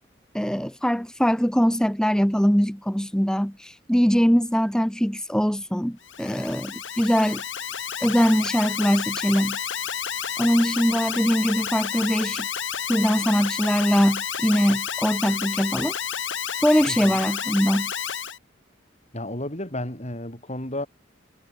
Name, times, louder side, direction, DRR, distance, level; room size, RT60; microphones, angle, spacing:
voice 1, 0.3-7.4 8.0-9.6 10.4-12.5 12.9-15.9 16.6-17.9, equal, 5° left, 1.7 m, -22 dB
Alarm, 6.0-18.4, left 8 dB, 80° left, 5.3 m, -30 dB
voice 2, 16.9-17.2 19.1-20.9, left 1 dB, 35° left, 6.8 m, -32 dB
head